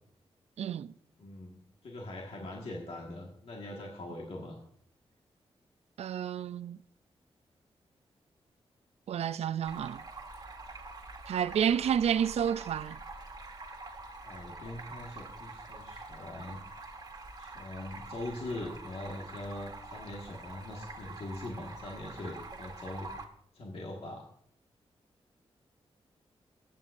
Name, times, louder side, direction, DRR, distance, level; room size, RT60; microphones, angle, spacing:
voice 1, 0.6-0.9 6.0-6.8 9.1-10.0 11.3-13.0, right 9 dB, 85° right, 0.4 m, -30 dB
voice 2, 1.2-4.6 14.2-16.6 17.4-23.1 23.5-24.2, left 1 dB, 70° left, 1.7 m, -42 dB
Stream, 9.6-23.2, right 3 dB, 40° right, 1.7 m, -46 dB
22.5 x 9.0 x 2.6 m
wide cardioid pair, 100°, 11 cm